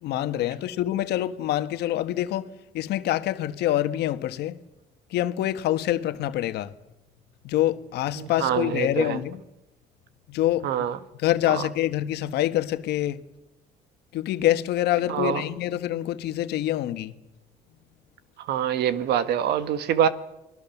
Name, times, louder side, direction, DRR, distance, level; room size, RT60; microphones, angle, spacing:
voice 1, 0.0-4.6 5.1-6.7 7.4-9.4 10.3-10.6 11.2-13.2 14.1-17.1, left 13 dB, 80° left, 1.5 m, -26 dB
voice 2, 8.2-9.2 10.6-11.0 11.5-11.6 15.1-15.4 18.4-20.1, right 9 dB, 75° right, 1.7 m, -25 dB
30.0 x 21.0 x 7.2 m
cardioid pair, 110°, 17 cm